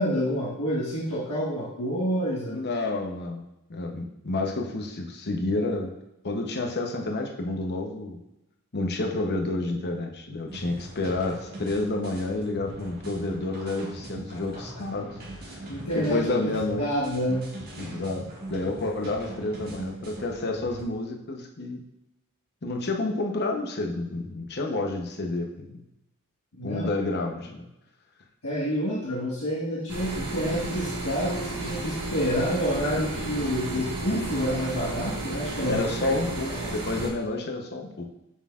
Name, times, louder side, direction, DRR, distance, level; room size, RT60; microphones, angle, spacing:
voice 1, 0.0-2.7 14.3-14.4 15.7-16.5 16.8-17.5 26.5-26.9 28.4-35.8 36.5-36.7, equal, 80° left, -8 dB, 1.4 m, -28 dB
voice 2, 2.5-3.4 3.7-5.9 6.2-8.2 8.7-15.5 15.9-16.8 17.8-21.8 22.6-25.8 26.6-27.7 33.7-33.9 35.6-38.1, left 2 dB, 50° left, 2 dB, 0.9 m, -30 dB
sound 1, 10.5-20.8, right 1 dB, 45° right, 1.7 m, -41 dB
sound 2, 29.9-37.1, right 2 dB, 85° right, 1.5 m, -33 dB
7.2 x 6.4 x 2.4 m, 0.91 s
head